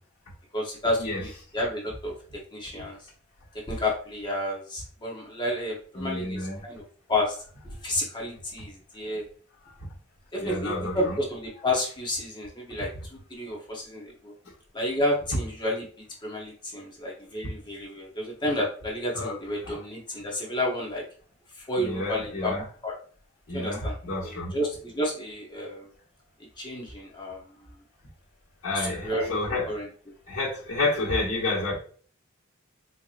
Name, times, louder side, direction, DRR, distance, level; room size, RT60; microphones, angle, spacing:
voice 1, 0.5-2.1 2.5-3.0 3.7-6.8 7.1-7.3 7.6-9.2 10.3-14.3 14.7-15.9 16.2-21.0 21.6-22.9 23.5-25.9 26.6-27.4 28.7-29.3 29.7-29.9, left 1 dB, 20° left, 0.9 m, -31 dB
voice 2, 5.9-6.6 10.4-11.2 19.1-19.4 19.6-19.8 21.8-22.6 23.5-24.5 28.6-29.8 30.3-31.7, left 2 dB, 65° left, 1.5 m, -30 dB
4.5 x 2.8 x 2.5 m
head